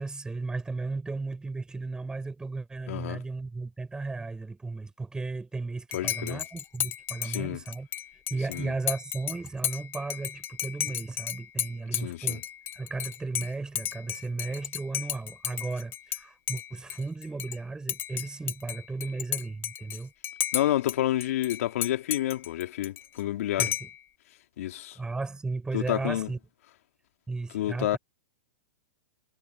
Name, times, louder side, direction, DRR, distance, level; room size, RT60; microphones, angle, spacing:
voice 1, 0.0-7.9 8.3-12.4 12.8-20.1 23.6-23.9 25.0-26.4 27.3-28.0, right 3 dB, 10° right, 7.2 m, -35 dB
voice 2, 2.9-3.2 5.9-6.4 7.2-7.6 8.5-8.7 11.9-12.4 20.5-23.7 24.6-25.0 25.7-26.3 27.5-28.0, left 13 dB, 65° left, 2.8 m, -29 dB
Dishes pots and pans / Cutlery silverware / Chink clink, 5.9-16.2 16.5-17.6 17.9-21.0 21.2-23.2 23.6-24.0, left 11 dB, 25° left, 1.0 m, -34 dB
hypercardioid pair, 125°, 8 cm